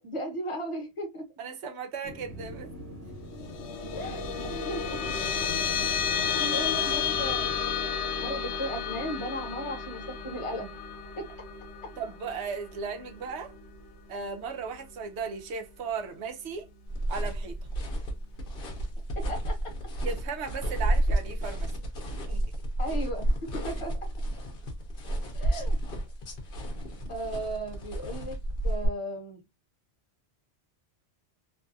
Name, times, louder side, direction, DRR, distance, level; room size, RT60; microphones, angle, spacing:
voice 1, 0.0-1.2 3.9-5.0 6.1-7.7 8.2-10.8 11.2-11.3 19.3-19.5 22.8-23.9 25.3-25.8 27.1-28.4 28.6-29.4, equal, 30° left, 0.9 m, -36 dB
voice 2, 1.4-2.7 12.0-13.5 14.1-16.7 17.1-17.6 20.0-21.7 22.3-22.4, right 5 dB, 75° right, 0.9 m, -36 dB
sound 1, 2.0-7.6, equal, 35° right, 1.1 m, -42 dB
sound 2, 3.3-14.1, left 7 dB, 80° left, 0.9 m, -32 dB
sound 3, 16.9-28.9, right 1 dB, 55° left, 0.8 m, -31 dB
2.6 x 2.3 x 2.5 m
omnidirectional pair, 1.2 m